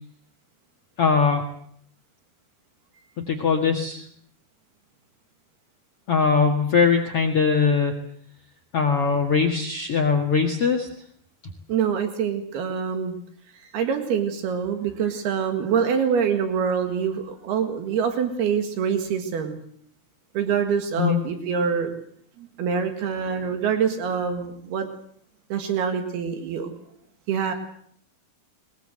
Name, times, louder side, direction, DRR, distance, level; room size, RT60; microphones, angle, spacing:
voice 1, 1.0-1.4 3.3-4.0 6.1-7.9 8.7-10.9 21.0-21.2, left 5 dB, 45° left, 2 dB, 2.4 m, -21 dB
voice 2, 11.7-13.2 13.5-19.6 20.4-21.9 22.4-24.9 25.5-26.7 27.3-27.5, right 7 dB, 80° right, 6 dB, 3.9 m, -25 dB
22.5 x 20.5 x 7.9 m, 0.63 s
omnidirectional pair, 4.5 m